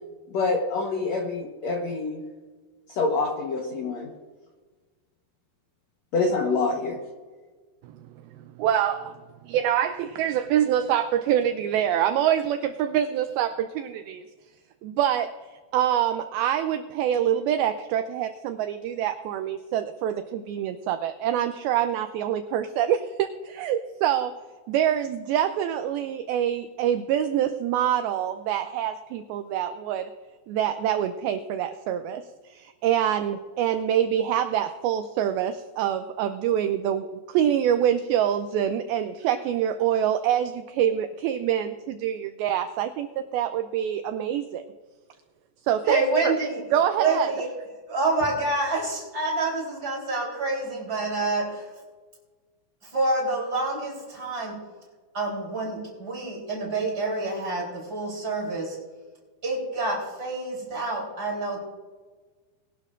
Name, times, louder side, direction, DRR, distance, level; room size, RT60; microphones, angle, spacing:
voice 1, 0.3-2.2 3.0-4.1 6.1-7.0, left 3 dB, 85° left, 1 dB, 1.5 m, -26 dB
voice 2, 8.4-9.2 9.4-14.2 14.8-15.4 15.7-24.3 24.7-30.1 30.5-44.6 45.6-46.3 46.7-47.3, right 10 dB, 85° right, 8 dB, 2.2 m, -25 dB
voice 3, 45.8-46.6 46.9-47.5 47.9-51.8 52.8-54.6 55.1-58.8 59.4-61.6, right 2 dB, 25° right, -3 dB, 3.7 m, -27 dB
21.0 x 11.5 x 2.5 m, 1.4 s
omnidirectional pair, 4.9 m